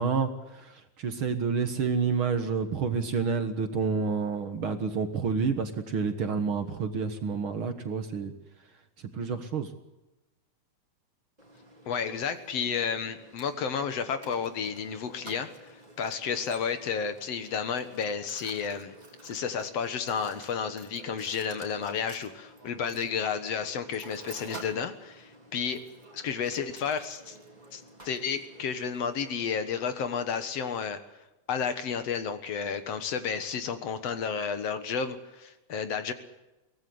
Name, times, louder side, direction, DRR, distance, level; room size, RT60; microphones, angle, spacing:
voice 1, 0.0-8.3 9.1-9.7, right 5 dB, 50° right, 7 dB, 2.0 m, -29 dB
Mechanisms, 11.4-29.5, right 1 dB, 15° right, 3.4 m, -50 dB
voice 2, 11.9-15.5 16.0-18.9 19.2-25.8 26.1-27.4 27.7-31.0 31.5-36.1, left 6 dB, 60° left, 10 dB, 2.3 m, -32 dB
23.5 x 18.0 x 7.9 m, 1.0 s
omnidirectional pair, 3.3 m